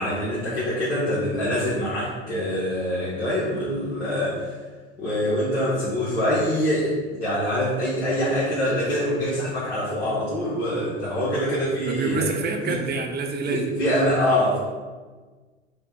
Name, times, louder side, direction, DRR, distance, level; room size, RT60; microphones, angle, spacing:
voice 1, 0.0-4.6 5.0-12.3 12.7-12.8 13.5-14.6, equal, 75° left, -9 dB, 1.4 m, -24 dB
voice 2, 11.8-13.7, right 4 dB, 25° right, 3 dB, 0.7 m, -27 dB
5.0 x 2.3 x 4.6 m, 1.4 s
figure-of-eight pair, 70°, 36 cm